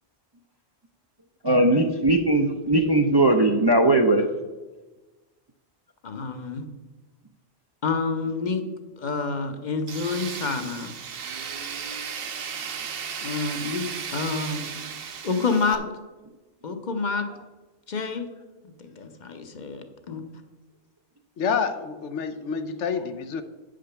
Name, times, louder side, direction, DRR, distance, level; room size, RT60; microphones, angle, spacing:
voice 1, 1.4-4.3, right 2 dB, 30° right, 3 dB, 0.5 m, -19 dB
voice 2, 6.0-6.6 7.8-8.6 9.0-10.9 13.2-13.8 14.1-14.7 15.2-15.9 16.6-17.3 17.9-18.3 18.6-20.2, left 4 dB, 45° left, 7 dB, 0.9 m, -28 dB
Tools, 9.9-15.8, right 7 dB, 60° right, 0.9 m, -35 dB
voice 3, 21.4-23.4, left 6 dB, 80° left, 9 dB, 1.0 m, -28 dB
8.6 x 5.1 x 6.7 m, 1.2 s
omnidirectional pair, 1.2 m